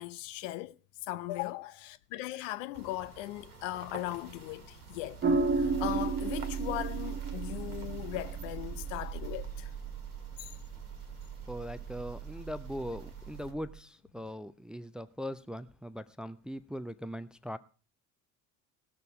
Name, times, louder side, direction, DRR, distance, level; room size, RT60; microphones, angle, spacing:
voice 1, 0.0-9.7 10.4-10.6, left 16 dB, 55° left, 0.7 m, -39 dB
sound 1, 2.7-13.5, right 4 dB, 80° right, 1.6 m, -48 dB
sound 2, 5.2-13.8, right 4 dB, 25° right, 1.5 m, -35 dB
voice 2, 11.5-17.6, equal, ahead, 0.5 m, -40 dB
18.5 x 6.7 x 4.9 m
figure-of-eight pair, 60°, 44 cm